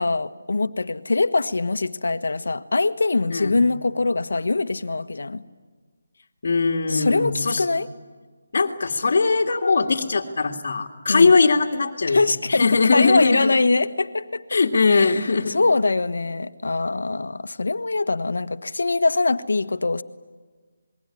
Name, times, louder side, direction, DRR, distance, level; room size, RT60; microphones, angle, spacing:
voice 1, 0.0-5.5 6.9-7.9 11.1-11.4 12.1-14.4 14.9-20.0, left 3 dB, 80° left, 1.4 m, -23 dB
voice 2, 6.4-7.6 8.5-12.2 12.5-13.6 14.5-15.6, left 4 dB, 55° left, 2.1 m, -20 dB
27.5 x 21.5 x 9.9 m
figure-of-eight pair, 165°, 0 cm